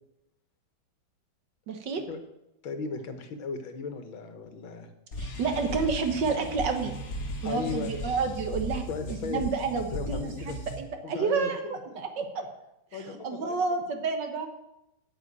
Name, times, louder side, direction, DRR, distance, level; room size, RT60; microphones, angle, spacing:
voice 1, 1.7-2.0 5.2-6.9 7.4-8.8 9.1-12.4 12.9-14.5, right 5 dB, 65° right, 6 dB, 1.8 m, -30 dB
voice 2, 2.6-4.9 7.4-8.0 8.9-9.4 9.9-10.6 11.0-12.5 12.9-13.6, left 5 dB, 75° left, 8 dB, 2.0 m, -37 dB
sound 1, 5.1-10.8, equal, 50° left, 1.7 m, -37 dB
9.4 x 6.7 x 8.6 m, 0.90 s
omnidirectional pair, 2.2 m